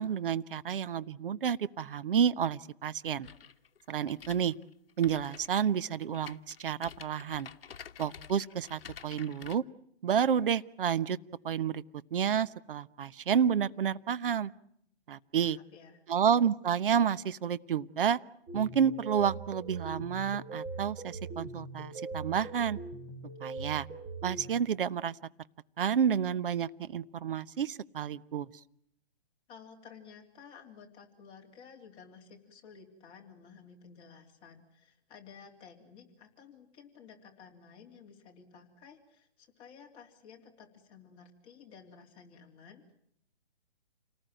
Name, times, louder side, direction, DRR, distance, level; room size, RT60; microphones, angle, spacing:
voice 1, 0.0-3.3 3.9-4.5 5.0-7.5 8.0-9.6 10.0-11.2 11.4-11.8 12.1-14.5 15.1-15.6 16.1-18.2 18.5-22.8 23.4-23.9 24.2-25.1 25.8-28.5, right 8 dB, 55° right, 16 dB, 1.1 m, -30 dB
sound 1, 3.2-9.6, left 7 dB, 60° left, 1.4 m, -49 dB
voice 2, 15.3-16.0 29.5-42.8, left 6 dB, 15° left, 0 dB, 3.3 m, -54 dB
sound 2, 18.5-24.5, right 3 dB, 20° right, 7.4 m, -41 dB
29.0 x 19.5 x 9.1 m, 0.73 s
hypercardioid pair, 155°, 32 cm